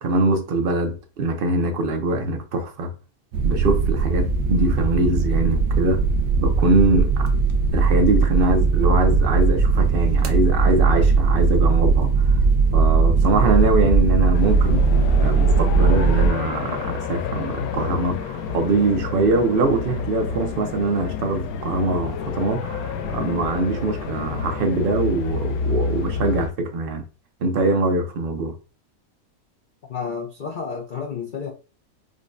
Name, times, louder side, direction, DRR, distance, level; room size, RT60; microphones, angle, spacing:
voice 1, 0.0-2.9 3.4-6.0 6.4-7.3 7.7-12.4 12.7-14.9 15.2-27.0 27.4-28.5, right 2 dB, 60° right, 0.6 m, -23 dB
sound 1, 3.3-16.3, right 4 dB, 80° right, 1.1 m, -19 dB
sound 2, 14.3-26.5, left 5 dB, 80° left, 1.0 m, -29 dB
voice 2, 29.9-31.5, left 6 dB, 55° left, 0.6 m, -31 dB
5.0 x 2.2 x 2.5 m
omnidirectional pair, 1.6 m